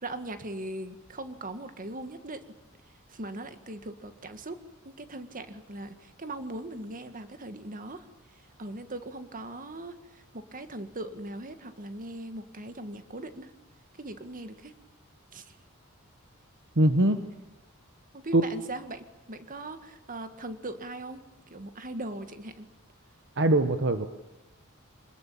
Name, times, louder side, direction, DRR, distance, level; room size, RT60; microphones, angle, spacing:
voice 1, 0.0-2.4 3.1-4.6 4.9-8.1 8.3-13.5 14.0-14.7 15.3-15.6 18.1-21.2 21.5-22.7, right 1 dB, 40° right, 9 dB, 1.9 m, -40 dB
voice 2, 16.8-17.2 18.3-18.4 23.4-24.1, right 1 dB, 60° right, 8 dB, 1.3 m, -22 dB
26.0 x 20.5 x 8.7 m, 0.99 s
head